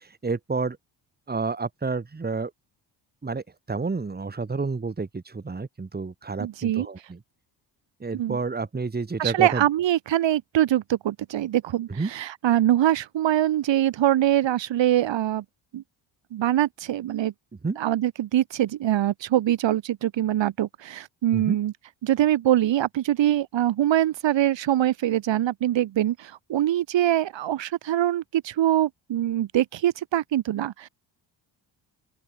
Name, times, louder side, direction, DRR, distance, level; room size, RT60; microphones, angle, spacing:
voice 1, 0.2-0.8 1.3-2.5 3.2-7.2 8.0-9.6 12.0-12.1 17.6-17.8 21.3-21.5, right 4 dB, 20° right, 3.2 m, -29 dB
voice 2, 6.4-6.9 8.1-8.4 9.2-15.4 15.7-15.8 16.3-17.3 17.8-21.7 22.0-30.9, right 12 dB, 75° right, 4.5 m, -23 dB
open air
cardioid pair, 115°, 44 cm